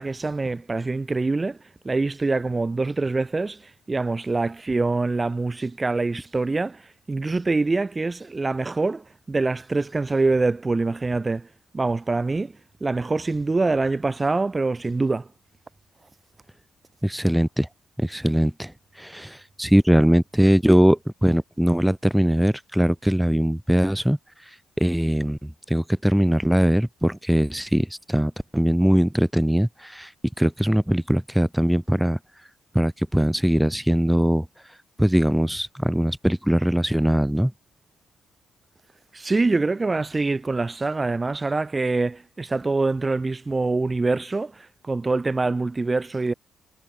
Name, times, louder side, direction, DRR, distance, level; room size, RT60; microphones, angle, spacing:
voice 1, 0.0-1.6 1.8-3.6 3.9-6.8 7.1-11.5 11.7-12.5 12.8-15.3 39.1-46.3, right 3 dB, 25° right, 3.1 m, -24 dB
voice 2, 17.0-17.7 18.0-18.7 19.0-19.3 19.6-24.2 24.8-29.7 29.9-30.1 30.4-32.2 32.7-34.4 35.0-37.5, equal, 5° right, 1.0 m, -21 dB
cardioid pair, 90°, 0 cm